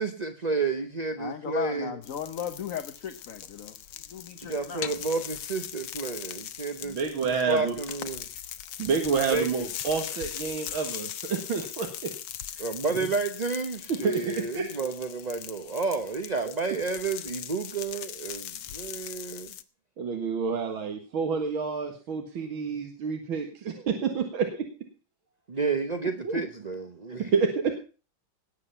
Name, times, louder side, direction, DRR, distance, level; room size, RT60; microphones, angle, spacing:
voice 1, 0.0-1.9 4.5-8.2 9.3-9.7 12.6-19.5 25.5-27.3, right 4 dB, 35° right, 7 dB, 0.6 m, -31 dB
voice 2, 1.2-4.8, left 8 dB, 50° left, 9 dB, 1.2 m, -36 dB
sound 1, 2.0-19.6, left 10 dB, 65° left, 1.4 m, -40 dB
voice 3, 6.8-7.7 8.8-12.1 12.5-12.6 13.9-14.7 20.0-24.6 26.2-26.4 27.3-27.5, right 5 dB, 80° right, 4 dB, 2.5 m, -29 dB
19.0 x 8.0 x 5.5 m, 0.36 s
omnidirectional pair, 2.2 m